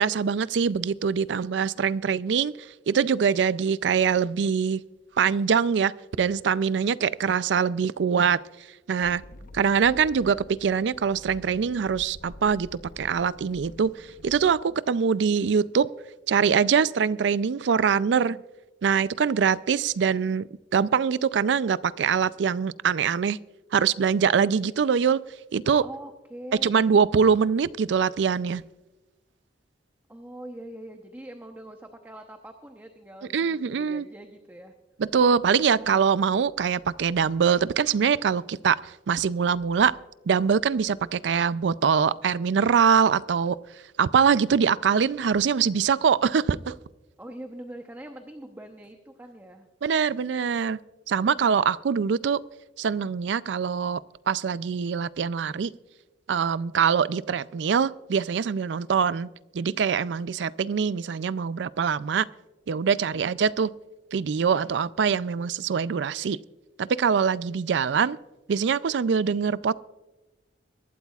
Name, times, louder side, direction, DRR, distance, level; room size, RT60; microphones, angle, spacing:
voice 1, 0.0-2.6 2.9-4.8 5.2-8.4 8.9-9.2 9.5-12.7 13.0-15.9 16.3-18.4 18.8-23.4 23.7-25.2 25.5-25.8 26.6-28.6 33.3-34.1 35.0-40.0 40.3-43.6 44.0-46.8 49.8-50.8 51.1-52.4 52.8-54.0 54.3-55.7 56.3-59.3 59.5-62.3 62.7-63.7 64.1-66.4 66.8-68.2 68.5-69.7, right 6 dB, 70° right, 18 dB, 0.4 m, -23 dB
sound 1, 9.0-14.5, left 1 dB, 50° left, 0.7 m, -47 dB
voice 2, 25.8-27.0 30.1-34.7 47.2-49.7, right 1 dB, 10° right, 4 dB, 0.8 m, -43 dB
24.0 x 12.5 x 2.4 m, 1.1 s
head